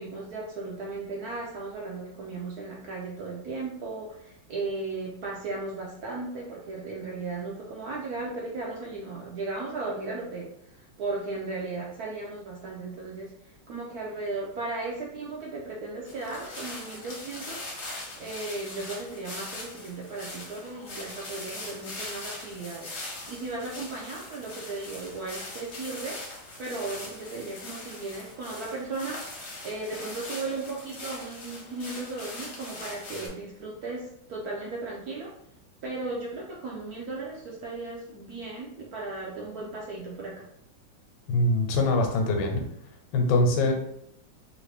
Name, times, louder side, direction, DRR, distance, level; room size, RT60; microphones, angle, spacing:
voice 1, 0.0-17.7 18.2-26.2 26.6-29.2 29.6-35.3 35.8-40.5 43.6-43.7, right 3 dB, 70° right, -3 dB, 0.9 m, -36 dB
sound 1, 16.1-33.3, left 2 dB, 55° left, 0.7 m, -41 dB
voice 2, 41.3-42.6 43.1-43.7, left 2 dB, 90° left, 3 dB, 1.4 m, -23 dB
3.2 x 2.5 x 3.3 m, 0.73 s
omnidirectional pair, 2.1 m